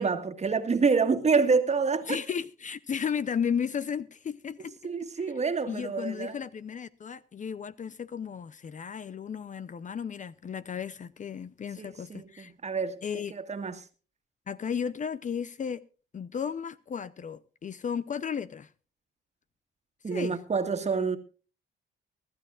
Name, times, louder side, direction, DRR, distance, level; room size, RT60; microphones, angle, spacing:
voice 1, 0.0-2.2 4.8-6.4 11.8-13.8 20.0-21.2, right 5 dB, 35° right, 1.9 m, -27 dB
voice 2, 2.1-4.7 5.7-12.5 13.0-13.3 14.5-15.8 16.1-18.7 20.1-20.4, left 7 dB, 40° left, 0.6 m, -34 dB
25.0 x 12.5 x 2.5 m
cardioid pair, 90°, 20 cm